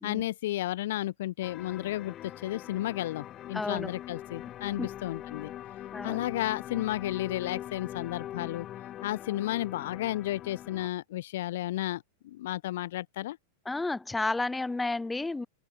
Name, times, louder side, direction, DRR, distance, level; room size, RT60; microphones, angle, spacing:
voice 1, 0.0-5.5 6.0-8.7 9.0-13.4, left 15 dB, 55° left, 0.6 m, -33 dB
sound 1, 1.4-10.9, left 12 dB, 30° left, 4.1 m, -42 dB
voice 2, 3.5-3.9 4.7-4.9 5.9-6.2 13.7-15.5, left 3 dB, 10° left, 0.9 m, -32 dB
figure-of-eight pair, 90°, 0 cm